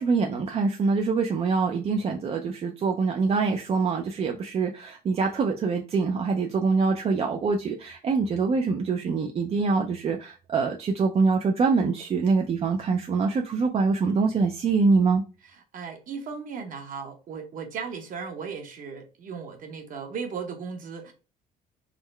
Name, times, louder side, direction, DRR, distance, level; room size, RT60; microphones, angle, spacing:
voice 1, 0.0-15.2, right 4 dB, 35° right, 0.4 m, -24 dB
voice 2, 15.5-21.1, right 6 dB, 55° right, 0.9 m, -36 dB
3.7 x 2.1 x 3.2 m
cardioid pair, 110°, 17 cm